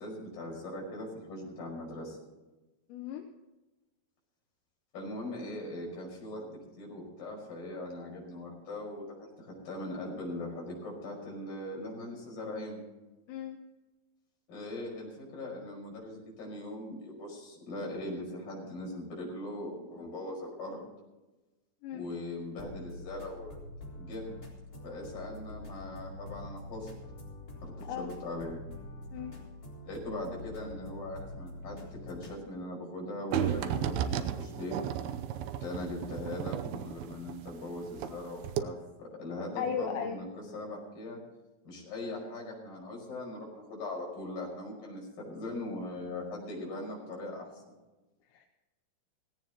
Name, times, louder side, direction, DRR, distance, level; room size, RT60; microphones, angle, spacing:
voice 1, 0.0-2.2 4.9-12.8 14.5-20.8 21.9-23.6 24.0-24.3 24.8-26.9 27.6-28.6 29.8-34.8 35.6-40.3 40.5-41.2 41.6-47.6, left 1 dB, 50° left, -2 dB, 6.8 m, -40 dB
voice 2, 2.9-3.3 13.3-13.6 21.8-22.1 27.9-28.1 29.1-29.4 39.6-40.2 48.3-48.5, left 7 dB, 85° left, 4 dB, 3.1 m, -36 dB
sound 1, 22.6-32.4, left 2 dB, 20° left, 3.7 m, -45 dB
sound 2, 33.3-38.2 38.4-38.6, right 10 dB, 75° right, 2.5 m, -33 dB
17.5 x 17.0 x 3.0 m, 1.1 s
omnidirectional pair, 5.0 m